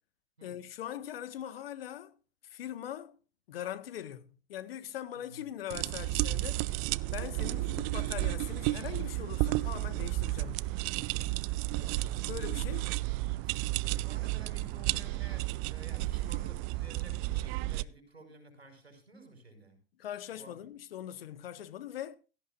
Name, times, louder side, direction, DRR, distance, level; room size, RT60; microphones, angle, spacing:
voice 1, 0.4-2.1 2.5-3.2 3.5-6.7 7.1-10.7 12.3-12.9 20.0-22.2, left 11 dB, 70° left, 1.6 m, -41 dB
sound 1, 5.7-17.8, right 18 dB, 45° right, 0.6 m, -32 dB
voice 2, 11.3-12.2 13.4-19.8 20.3-20.5, right 2 dB, 90° right, 5.8 m, -54 dB
16.5 x 15.0 x 2.6 m
figure-of-eight pair, 85°, 31 cm